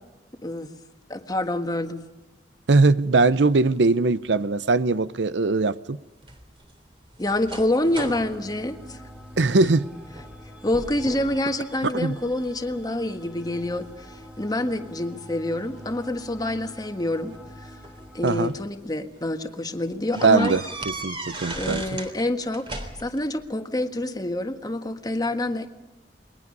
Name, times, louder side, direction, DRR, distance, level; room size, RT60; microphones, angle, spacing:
voice 1, 0.4-0.8 1.1-2.0 7.2-9.0 10.6-17.7 18.1-20.5 21.6-22.7 23.0-25.7, left 1 dB, 20° left, 1.5 m, -27 dB
voice 2, 2.7-6.0 9.4-9.9 11.9-12.2 18.2-18.5 20.2-21.8, right 3 dB, 85° right, 0.7 m, -21 dB
sound 1, 6.2-9.7 10.1-10.4 10.7-11.4 11.8-12.6 13.2-14.6 15.8-15.9 17.1-18.5 19.0-19.2 19.5-19.6 20.1-22.1 22.4-23.3, right 2 dB, 30° right, 3.4 m, -37 dB
sound 2, 7.8-18.7, equal, 5° right, 3.2 m, -45 dB
29.5 x 21.5 x 5.4 m
head